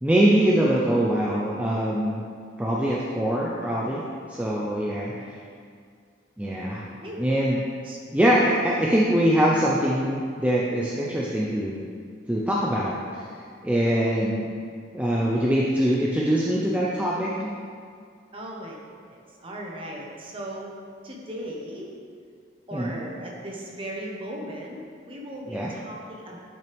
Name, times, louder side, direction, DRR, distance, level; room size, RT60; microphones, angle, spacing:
voice 1, 0.0-2.2 2.6-4.0 4.3-5.1 6.4-6.8 7.2-7.6 8.1-11.8 12.3-13.2 13.6-14.5 14.9-17.5 22.7-23.0 25.5-25.7, equal, 5° right, -5 dB, 0.5 m, -23 dB
voice 2, 4.9-5.4 6.8-7.2 7.8-8.0 8.6-8.8 18.3-18.8 19.1-20.7 21.0-21.9 22.7-26.4, right 1 dB, 30° right, -2 dB, 1.1 m, -38 dB
9.2 x 5.8 x 3.5 m, 2.2 s
head